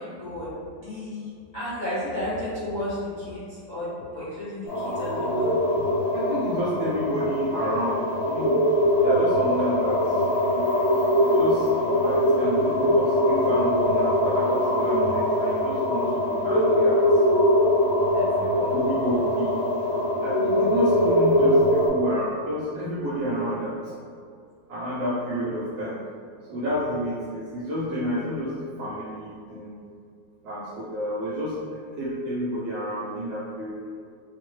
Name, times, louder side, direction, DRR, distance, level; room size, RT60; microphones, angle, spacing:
voice 1, 0.0-5.6 18.1-18.8, left 1 dB, 60° left, -11 dB, 0.4 m, -33 dB
sound 1, 4.7-21.9, equal, 90° left, 2.1 m, -22 dB
voice 2, 6.1-8.6 9.0-10.2 11.2-11.7 12.0-17.0 18.7-19.6 20.2-23.9 24.7-26.0 26.5-29.7 30.4-33.8, equal, 75° right, -6 dB, 1.3 m, -30 dB
4.3 x 2.1 x 3.1 m, 2.3 s
omnidirectional pair, 2.1 m